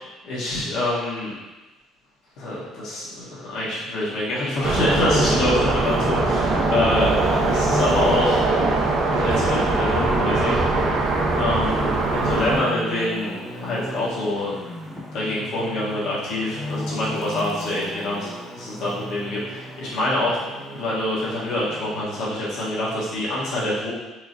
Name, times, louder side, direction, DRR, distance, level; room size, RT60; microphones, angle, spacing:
voice 1, 0.0-1.3 2.4-8.4 9.1-11.0 11.4-14.5 15.1-18.3 18.6-20.4 20.7-23.9, left 1 dB, 75° left, -7 dB, 1.2 m, -26 dB
Traffic noise roadway noise, 3.5-22.0, left 1 dB, ahead, 0.8 m, -35 dB
sound 1, 4.6-12.6, right 3 dB, 60° right, 0.5 m, -21 dB
4.5 x 2.1 x 2.6 m, 1.1 s
cardioid pair, 105°, 0 cm